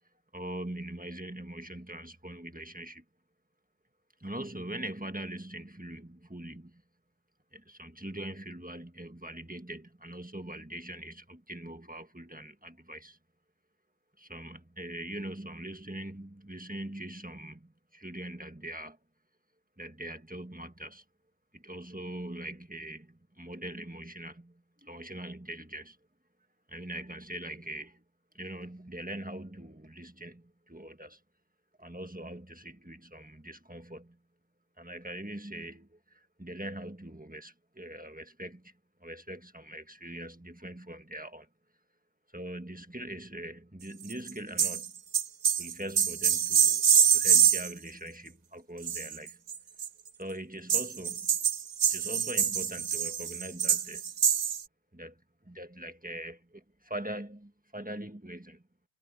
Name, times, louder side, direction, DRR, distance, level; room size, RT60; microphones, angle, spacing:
voice 1, 0.3-3.0 4.2-6.8 7.5-13.2 14.2-19.0 19.8-21.0 21.5-26.0 26.7-28.0 28.3-31.2 31.8-34.2 34.8-38.7 39.0-41.5 42.3-44.9 45.6-46.8 47.1-49.4 50.2-51.3 51.9-54.0 54.9-58.6, right 1 dB, 5° right, 1.3 m, -42 dB
sound 1, 44.1-44.3 44.6-44.9 45.1-47.7 48.8-49.9 50.7-54.6, right 8 dB, 45° right, 0.6 m, -25 dB
omnidirectional pair, 1.2 m